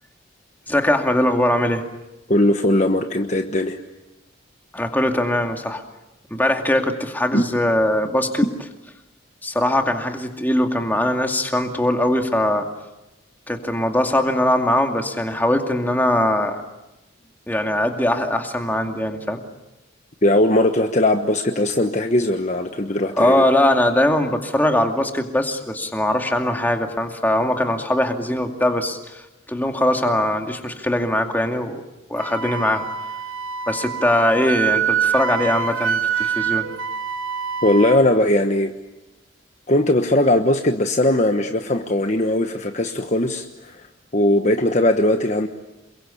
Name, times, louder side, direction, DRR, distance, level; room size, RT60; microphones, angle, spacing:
voice 1, 0.7-1.8 4.7-5.8 6.3-8.4 9.4-12.7 13.5-16.6 17.5-19.4 23.2-29.2 29.5-31.8 32.1-32.8 33.7-36.7, left 1 dB, 10° left, 3 dB, 2.4 m, -21 dB
voice 2, 2.3-3.8 7.3-7.4 20.2-23.4 37.6-38.7 39.7-43.9 44.1-45.5, left 1 dB, 35° left, 5 dB, 1.2 m, -19 dB
Wind instrument woodwind instrument, 32.2-38.0, right 7 dB, 90° right, 1.5 m, -25 dB
28.5 x 23.0 x 8.5 m, 0.99 s
head